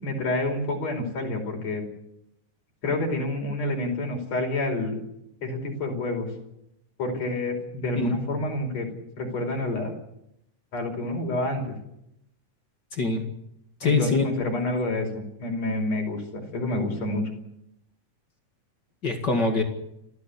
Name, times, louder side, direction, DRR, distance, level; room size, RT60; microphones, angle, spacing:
voice 1, 0.0-1.8 2.8-5.0 5.4-6.3 7.0-8.9 9.2-9.9 10.7-11.8 13.8-17.3, left 2 dB, 55° left, 2 dB, 6.0 m, -28 dB
voice 2, 12.9-13.2 13.8-14.2 19.0-19.6, left 3 dB, 35° left, 4 dB, 2.4 m, -24 dB
30.0 x 13.5 x 8.5 m, 0.81 s
omnidirectional pair, 3.6 m